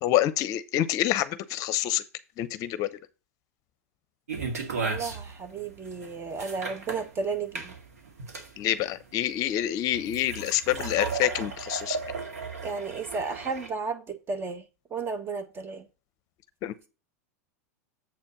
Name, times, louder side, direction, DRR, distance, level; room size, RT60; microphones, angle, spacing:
voice 1, 0.0-2.0 2.4-2.9 8.6-12.0 16.6-16.9, left 13 dB, 45° left, 0.7 m, -27 dB
sound 1, 4.3-13.7, right 4 dB, 80° right, 2.0 m, -35 dB
voice 2, 4.8-7.7 10.9-11.0 12.6-14.6 14.9-15.9, right 4 dB, 25° right, 1.5 m, -33 dB
7.6 x 4.4 x 5.8 m
hypercardioid pair, 95°, 8 cm